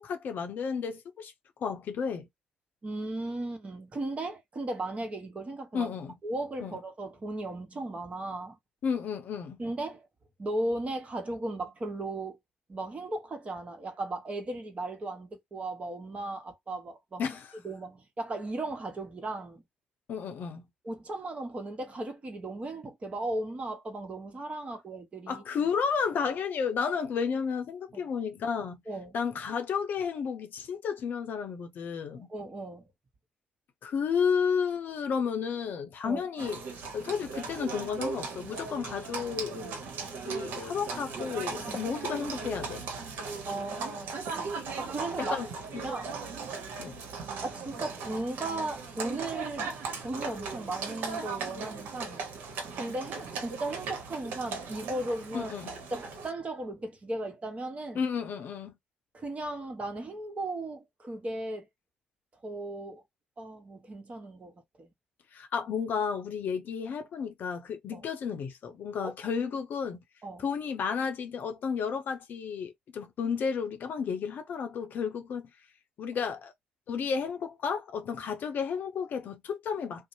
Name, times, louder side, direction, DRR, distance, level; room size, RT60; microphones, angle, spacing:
voice 1, 0.0-1.3 1.6-2.3 5.7-6.1 6.6-6.8 8.8-9.6 17.2-17.5 20.1-20.6 25.3-28.8 29.1-32.3 33.8-36.6 36.9-39.5 40.3-42.8 45.2-45.5 45.7-45.9 46.8-47.0 55.3-55.7 57.9-58.7 65.3-70.0 70.4-75.5 76.0-76.5 76.9-80.1, left 6 dB, 55° left, 0.6 m, -32 dB
voice 2, 2.8-5.9 6.2-8.6 9.6-10.1 10.4-12.4 12.7-17.2 17.6-19.6 20.8-25.4 28.9-29.2 32.2-32.9 36.0-36.2 41.7-41.9 43.4-45.4 45.8-46.2 47.4-52.3 52.7-55.5 55.9-58.0 59.1-61.7 62.4-63.0 63.4-64.9 67.9-68.1 69.0-69.1 70.2-70.4, right 2 dB, 35° right, 1.0 m, -36 dB
Livestock farm animals working animals, 36.4-56.3, right 4 dB, 65° right, 0.9 m, -38 dB
2.6 x 2.0 x 2.6 m
hypercardioid pair, 50°, 4 cm